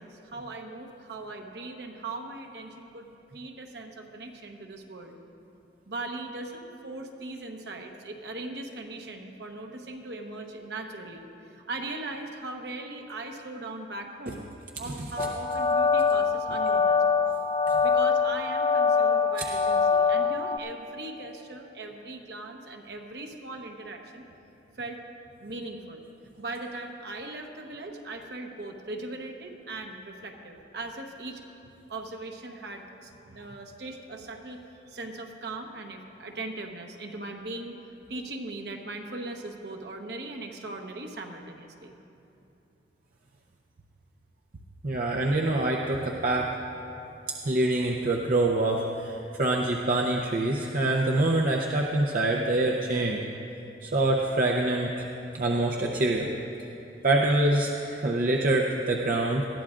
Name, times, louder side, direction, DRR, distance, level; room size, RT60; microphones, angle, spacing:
voice 1, 0.0-3.1 3.3-5.2 5.9-14.5 14.8-17.0 17.8-24.2 24.8-25.0 25.4-26.0 26.3-31.4 31.9-37.8 38.1-41.9, right 2 dB, 65° right, 3 dB, 1.1 m, -39 dB
sound 1, 15.2-20.6, left 5 dB, 25° left, 0.4 m, -24 dB
voice 2, 44.8-46.5 47.4-53.2 53.8-55.0 55.3-56.3 57.0-59.5, right 2 dB, 50° right, 0 dB, 0.6 m, -25 dB
20.0 x 14.0 x 2.5 m, 2.9 s
head